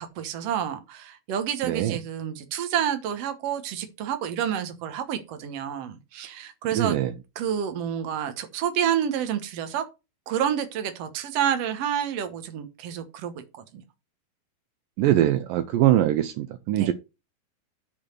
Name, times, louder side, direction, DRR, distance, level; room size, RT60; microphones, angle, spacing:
voice 1, 0.0-7.0 7.3-9.9 10.3-13.8 16.7-16.9, right 9 dB, 65° right, 1.7 m, -29 dB
voice 2, 1.6-2.0 6.7-7.1 15.0-16.9, right 12 dB, 80° right, 2.1 m, -22 dB
8.7 x 4.1 x 6.5 m
omnidirectional pair, 4.4 m